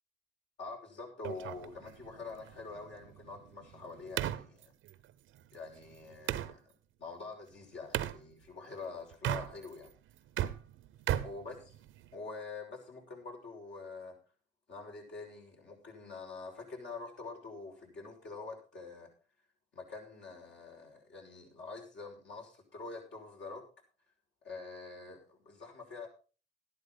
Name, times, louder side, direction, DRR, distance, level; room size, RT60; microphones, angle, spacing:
voice 1, 0.6-4.7 5.5-6.6 7.0-9.9 11.2-11.8 12.1-14.2 14.7-19.1 19.7-23.6 24.4-26.1, left 3 dB, 65° left, 1 dB, 5.9 m, -46 dB
sound 1, 1.2-6.5 7.9-8.2 9.1-9.9 10.2-12.1, right 12 dB, 90° right, 0.9 m, -37 dB
14.0 x 12.0 x 3.9 m, 0.36 s
cardioid pair, 90°, 20 cm